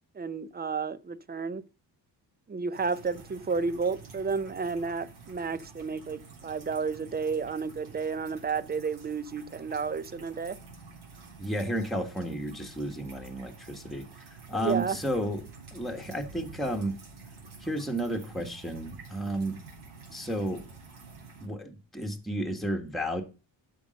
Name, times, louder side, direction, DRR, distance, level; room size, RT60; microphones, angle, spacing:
voice 1, 0.2-1.6 2.5-10.6 14.5-15.0, right 5 dB, 20° right, 0.5 m, -31 dB
sound 1, 2.7-21.5, right 4 dB, 60° right, 4.0 m, -49 dB
voice 2, 11.4-14.0 14.5-15.4 15.7-16.9 17.6-19.6 20.1-20.6 21.4-23.2, right 1 dB, ahead, 1.4 m, -32 dB
12.0 x 5.3 x 5.2 m
wide cardioid pair, 140°, 44 cm